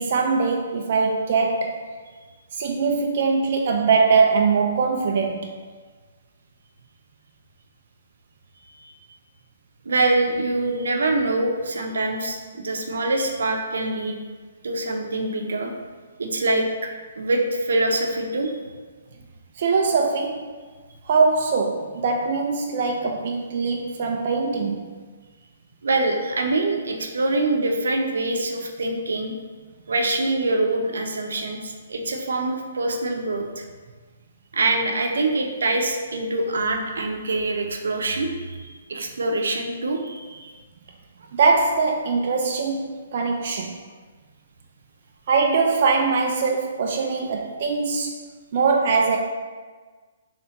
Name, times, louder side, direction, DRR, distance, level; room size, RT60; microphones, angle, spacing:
voice 1, 0.0-1.8 2.5-5.5 19.6-20.6 21.1-25.0 41.3-43.8 45.3-48.2 48.5-49.2, right 4 dB, 45° right, 2 dB, 0.3 m, -22 dB
voice 2, 8.8-9.2 9.9-14.2 14.6-15.7 16.2-16.9 17.2-18.6 25.8-29.3 29.9-33.6 34.5-40.5, right 2 dB, 90° right, 3 dB, 0.6 m, -24 dB
3.3 x 2.9 x 4.2 m, 1.4 s
hypercardioid pair, 165°, 0 cm